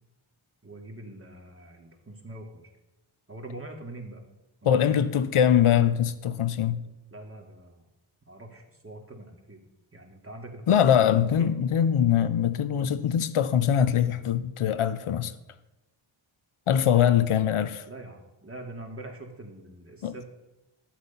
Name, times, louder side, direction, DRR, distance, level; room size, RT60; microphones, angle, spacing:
voice 1, 0.6-2.7 3.3-4.2 4.6-5.2 7.1-7.8 8.3-9.6 9.9-11.5 16.8-17.2 17.9-20.2, right 1 dB, 25° right, 2.4 m, -43 dB
voice 2, 4.6-6.8 10.7-15.3 16.7-17.8 20.0-20.1, left 9 dB, 85° left, 0.8 m, -22 dB
11.5 x 8.9 x 5.6 m
cardioid pair, 65°, 50 cm